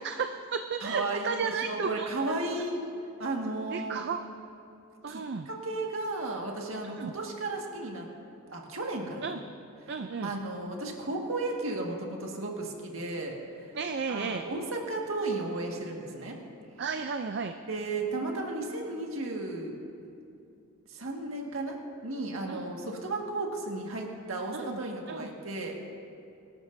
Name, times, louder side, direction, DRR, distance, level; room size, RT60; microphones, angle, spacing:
voice 1, 0.0-2.1 3.7-4.2 5.0-5.5 7.0-7.1 9.2-9.4 9.9-10.3 13.7-14.4 16.8-17.5 22.5-22.7 24.5-24.8 25.1-25.3, right 5 dB, 50° right, 7 dB, 0.4 m, -33 dB
voice 2, 0.8-2.9 3.2-4.0 5.1-8.1 8.5-9.4 10.2-13.7 14.1-16.4 17.7-19.7 20.9-21.8 22.0-25.8, right 2 dB, 65° right, 0 dB, 1.8 m, -34 dB
24.0 x 12.5 x 2.7 m, 2.6 s
head